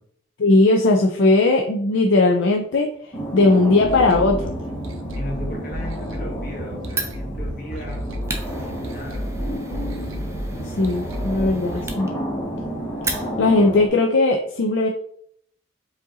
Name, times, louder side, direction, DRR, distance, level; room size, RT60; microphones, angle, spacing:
voice 1, 0.4-2.9 3.3-4.6 10.8-12.1 13.4-14.9, left 2 dB, 65° left, 2 dB, 0.4 m, -18 dB
sound 1, 3.1-13.9, equal, 10° left, 1.2 m, -32 dB
sound 2, 3.8-11.9, equal, 85° right, 0.6 m, -32 dB
voice 2, 5.1-8.1 8.6-9.3, left 1 dB, 45° left, 0 dB, 1.3 m, -36 dB
Fire, 6.9-13.7, right 3 dB, 15° right, 0.5 m, -35 dB
5.0 x 2.7 x 3.8 m, 0.66 s
head